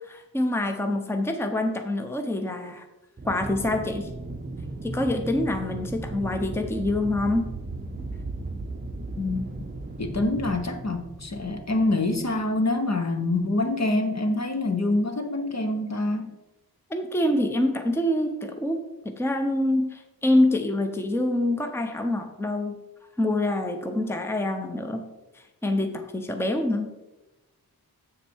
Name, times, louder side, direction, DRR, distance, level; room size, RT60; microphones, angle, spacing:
voice 1, 0.1-2.8 3.2-4.1 4.8-7.5 16.9-22.8 23.2-25.1 25.6-26.9, left 1 dB, 5° left, 5 dB, 0.8 m, -26 dB
Aircraft, 3.2-12.6, right 2 dB, 25° right, 0.7 m, -36 dB
voice 2, 9.2-9.6 10.0-16.4, left 2 dB, 45° left, 5 dB, 1.0 m, -26 dB
7.4 x 6.6 x 4.6 m, 1.0 s
wide cardioid pair, 80°, 38 cm